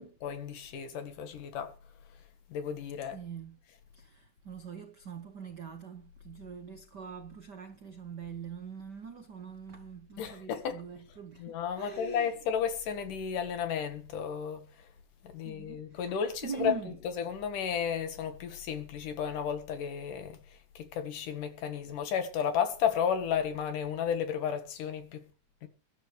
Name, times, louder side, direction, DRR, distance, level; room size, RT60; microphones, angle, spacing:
voice 1, 0.2-1.7 2.5-3.2 10.2-10.8 11.4-14.7 15.2-16.7 17.2-20.4 20.8-25.2 25.6-25.7, left 8 dB, 85° left, 3.2 m, -33 dB
voice 2, 3.1-3.6 3.9-12.3 15.4-16.1 16.4-17.0, right 6 dB, 85° right, 0.9 m, -43 dB
22.5 x 12.0 x 3.3 m
omnidirectional pair, 3.6 m